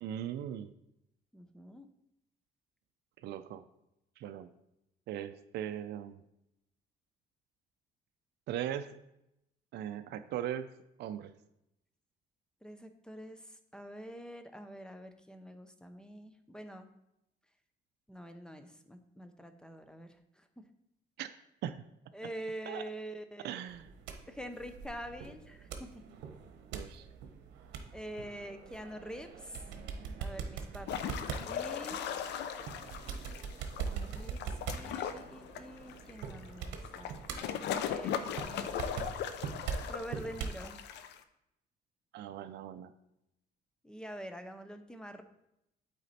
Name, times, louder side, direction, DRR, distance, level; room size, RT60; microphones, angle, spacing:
voice 1, 0.0-0.7 3.2-3.6 4.2-4.5 5.1-6.2 8.5-9.0 9.7-10.7 11.0-11.3 21.2-21.3 21.6-21.8 22.7-22.8 23.4-23.9 26.7-27.1 42.1-42.9, right 10 dB, 70° right, 10 dB, 0.5 m, -39 dB
voice 2, 1.3-1.9 12.6-16.9 18.1-20.1 20.4-20.5 22.1-23.6 24.3-25.9 27.9-29.6 30.2-32.1 33.8-34.4 34.7-37.2 37.8-38.8 39.8-40.8 43.8-45.2, equal, 5° left, 8 dB, 0.6 m, -46 dB
sound 1, 23.7-40.6, right 6 dB, 90° right, 0.9 m, -43 dB
sound 2, 30.9-41.2, left 8 dB, 75° left, 0.5 m, -38 dB
8.1 x 4.2 x 4.2 m, 0.83 s
cardioid pair, 105°, 18 cm